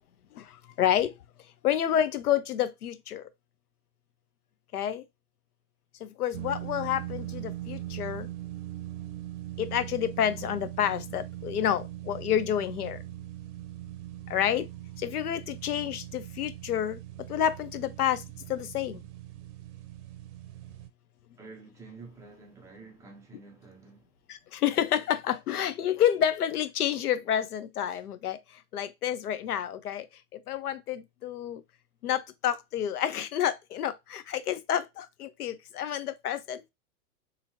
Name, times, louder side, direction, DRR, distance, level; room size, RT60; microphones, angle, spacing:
voice 1, 0.8-1.1 1.6-3.2 4.7-5.0 6.0-8.3 9.6-13.0 14.3-14.7 15.0-17.0 17.3-18.2 18.5-19.0 24.3-28.4 28.7-30.1 30.5-31.6 32.0-36.7, left 10 dB, 90° left, 0.5 m, -29 dB
sound 1, 6.3-20.9, right 14 dB, 55° right, 0.6 m, -41 dB
voice 2, 21.4-24.0, right 4 dB, 5° right, 0.4 m, -49 dB
2.7 x 2.6 x 2.7 m
hypercardioid pair, 110°, 44 cm